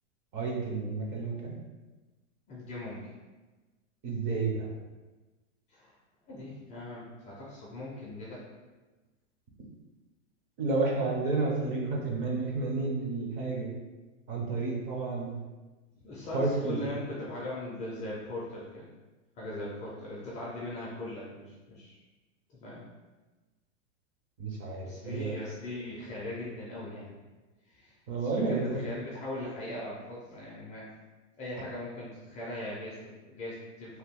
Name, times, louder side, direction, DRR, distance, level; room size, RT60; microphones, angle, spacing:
voice 1, 0.3-1.6 4.0-4.7 10.6-13.7 14.3-15.3 16.3-16.8 24.4-25.4 28.1-28.8, right 3 dB, 30° right, -2 dB, 0.6 m, -31 dB
voice 2, 2.5-3.1 5.7-6.0 6.3-8.4 16.0-18.9 19.4-22.0 22.6-22.8 24.8-27.1 27.7-30.8 31.4-34.0, left 1 dB, 20° left, -6 dB, 0.4 m, -40 dB
2.8 x 2.2 x 3.5 m, 1.2 s
hypercardioid pair, 140°, 38 cm